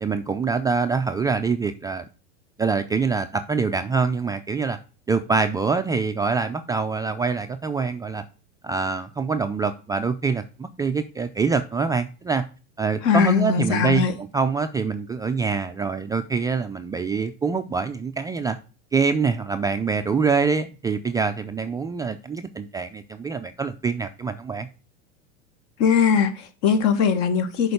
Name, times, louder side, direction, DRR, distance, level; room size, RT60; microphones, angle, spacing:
voice 1, 0.0-2.1 2.6-4.8 5.1-8.2 8.6-12.4 12.8-14.0 14.3-18.6 18.9-24.7, right 5 dB, 10° right, 0.3 m, -25 dB
voice 2, 13.0-14.1 25.8-27.7, left 6 dB, 55° left, 1.4 m, -20 dB
6.8 x 4.5 x 6.5 m
supercardioid pair, 115°, 33 cm